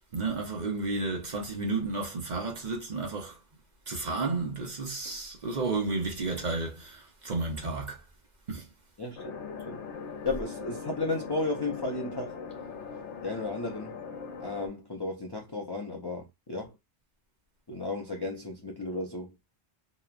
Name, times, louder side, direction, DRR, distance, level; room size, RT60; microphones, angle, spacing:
voice 1, 0.1-3.4 3.9-8.0 8.5-8.7, right 3 dB, 45° right, 0.8 m, -32 dB
voice 2, 9.0-9.4 9.7-9.8 10.2-12.4 13.2-14.0 14.4-16.7 17.7-19.3, left 2 dB, 30° left, 0.4 m, -34 dB
sound 1, 9.2-14.7, left 5 dB, 80° left, 1.0 m, -40 dB
2.9 x 2.2 x 2.3 m
omnidirectional pair, 1.2 m